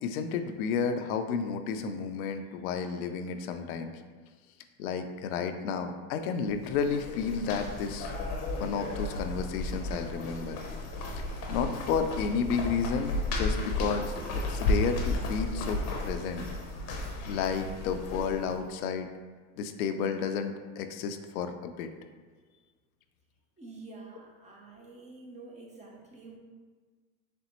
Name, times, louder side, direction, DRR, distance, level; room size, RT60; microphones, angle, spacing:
voice 1, 0.0-3.9 4.8-8.1 8.6-10.6 11.5-16.5 17.2-19.1 19.6-21.9, left 6 dB, 75° left, 7 dB, 0.5 m, -32 dB
sound 1, 6.5-18.6, left 2 dB, 35° left, 0.7 m, -33 dB
voice 2, 23.6-26.4, right 3 dB, 15° right, -1 dB, 0.6 m, -48 dB
4.2 x 3.3 x 2.9 m, 1.5 s
supercardioid pair, 110°, 43 cm